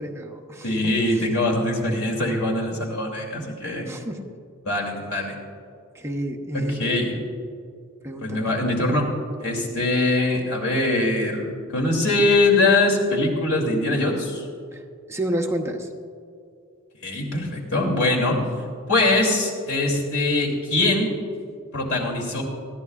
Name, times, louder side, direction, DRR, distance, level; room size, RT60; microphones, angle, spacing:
voice 1, 0.0-0.8 1.1-1.6 3.9-4.4 5.9-6.8 8.0-8.5 9.7-9.8 14.7-15.9, right 1 dB, 15° right, 2 dB, 0.8 m, -30 dB
voice 2, 0.6-3.9 4.6-5.3 6.5-7.1 8.2-9.1 9.4-14.5 17.0-18.4 18.9-21.1 21.7-22.4, left 2 dB, 85° left, -1 dB, 2.7 m, -22 dB
20.0 x 14.5 x 2.4 m, 2.4 s
head